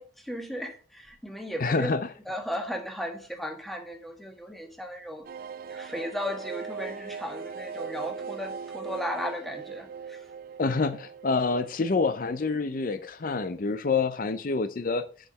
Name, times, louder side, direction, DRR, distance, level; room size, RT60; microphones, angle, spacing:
voice 1, 0.0-1.9 2.3-5.2 5.7-10.2, equal, ahead, 1.4 m, -36 dB
voice 2, 1.6-2.0 10.6-15.0, left 4 dB, 50° left, 0.5 m, -27 dB
sound 1, 5.2-12.7 13.0-13.1 13.3-13.4, right 6 dB, 55° right, 0.4 m, -39 dB
7.0 x 5.7 x 5.7 m
head